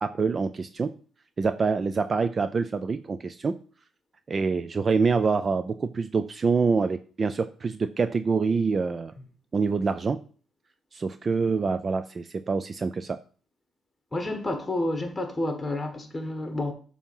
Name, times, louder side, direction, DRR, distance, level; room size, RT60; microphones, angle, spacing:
voice 1, 0.0-0.9 1.4-3.5 4.3-9.1 9.5-10.2 10.9-13.2, right 4 dB, 35° right, 0.3 m, -26 dB
voice 2, 14.1-16.7, left 1 dB, 15° left, 1.3 m, -29 dB
7.1 x 2.9 x 5.3 m
cardioid pair, 90°, 0 cm